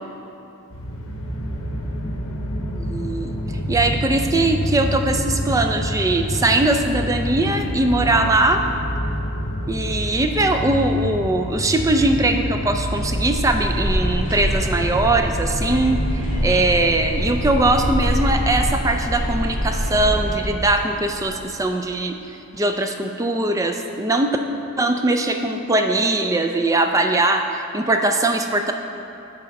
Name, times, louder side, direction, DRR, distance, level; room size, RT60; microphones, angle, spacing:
sound 1, 0.7-18.6, equal, 75° left, 0.8 m, -27 dB
voice 1, 2.7-3.3 3.7-8.6 9.7-24.4 24.8-28.7, right 2 dB, 15° right, 5 dB, 0.3 m, -21 dB
sound 2, 13.0-21.3, equal, 35° right, 1.8 m, -25 dB
9.1 x 4.2 x 5.2 m, 3.0 s
head